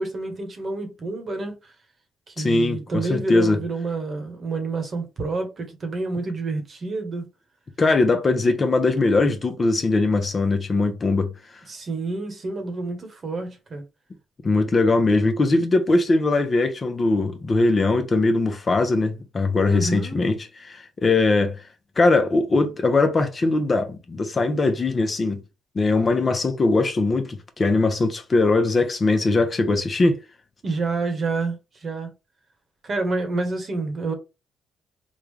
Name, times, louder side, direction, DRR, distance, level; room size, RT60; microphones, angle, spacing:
voice 1, 0.0-1.6 2.4-7.3 11.7-13.8 19.7-20.2 30.6-32.1 32.8-34.1, right 3 dB, 45° right, 1.1 m, -28 dB
voice 2, 2.4-3.6 7.8-11.3 14.4-21.6 22.0-25.4 25.7-30.2, left 3 dB, 35° left, 0.7 m, -21 dB
3.6 x 2.3 x 3.2 m
cardioid pair, 90°, 0 cm